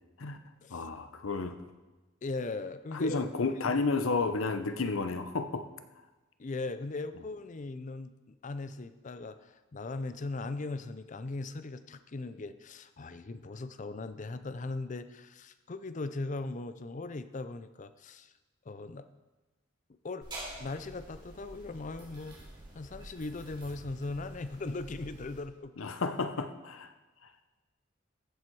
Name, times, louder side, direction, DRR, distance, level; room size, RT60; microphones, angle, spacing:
voice 1, 0.7-1.6 2.9-5.7 25.8-26.9, left 3 dB, 80° left, 9 dB, 0.8 m, -31 dB
voice 2, 2.2-3.8 6.4-18.3 18.7-19.1 20.0-20.3 20.6-22.4 22.7-25.7, left 3 dB, 35° left, 12 dB, 0.5 m, -39 dB
sound 1, 20.2-25.4, right 1 dB, 20° right, 3.3 m, -48 dB
14.0 x 7.4 x 4.6 m, 1.2 s
head